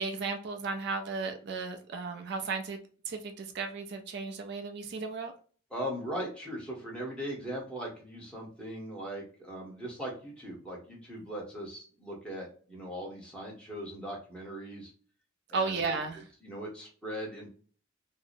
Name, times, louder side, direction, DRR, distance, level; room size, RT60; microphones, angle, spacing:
voice 1, 0.0-2.8 3.1-5.3 15.5-16.2, right 4 dB, 55° right, 0.4 m, -34 dB
voice 2, 5.7-14.9 15.5-15.9 16.4-17.5, equal, 5° left, 0.9 m, -39 dB
2.7 x 2.0 x 2.5 m
head